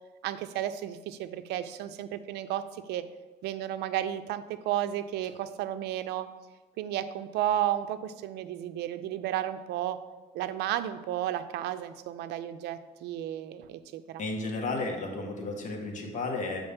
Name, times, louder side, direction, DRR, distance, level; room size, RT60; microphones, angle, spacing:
voice 1, 0.2-3.0 3.4-6.3 6.8-10.0 10.3-14.2, right 12 dB, 80° right, 11 dB, 0.5 m, -33 dB
voice 2, 14.2-16.7, left 3 dB, 45° left, 2 dB, 1.4 m, -33 dB
6.9 x 6.0 x 3.5 m, 1.2 s
cardioid pair, 110°, 17 cm